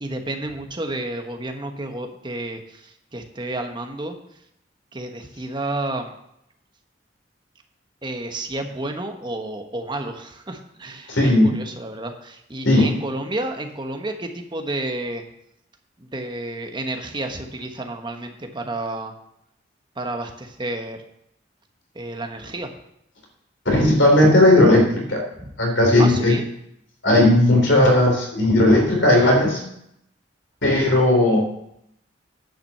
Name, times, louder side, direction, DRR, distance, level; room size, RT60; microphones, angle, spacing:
voice 1, 0.0-4.2 4.9-6.1 8.0-15.2 16.0-19.1 20.0-21.0 21.9-22.7 25.4-25.5 26.0-26.4, right 2 dB, 25° right, 4 dB, 1.1 m, -31 dB
voice 2, 11.1-11.5 12.7-12.9 23.7-25.2 25.6-26.3 27.0-29.6 30.6-31.5, left 1 dB, 80° left, 1 dB, 3.5 m, -16 dB
10.0 x 6.0 x 6.7 m, 0.78 s
head